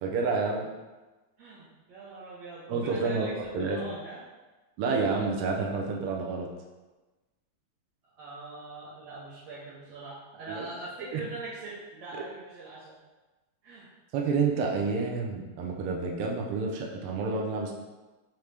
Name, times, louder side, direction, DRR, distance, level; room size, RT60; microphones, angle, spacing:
voice 1, 0.0-0.7 2.7-3.3 3.5-3.8 4.8-6.5 10.5-10.6 11.1-11.2 12.1-12.2 14.1-17.7, right 4 dB, 90° right, 0 dB, 1.3 m, -29 dB
voice 2, 1.4-3.3 3.7-4.2 8.1-13.0 13.6-13.9, right 3 dB, 70° right, -9 dB, 1.8 m, -42 dB
5.1 x 3.0 x 3.2 m, 1.2 s
omnidirectional pair, 3.4 m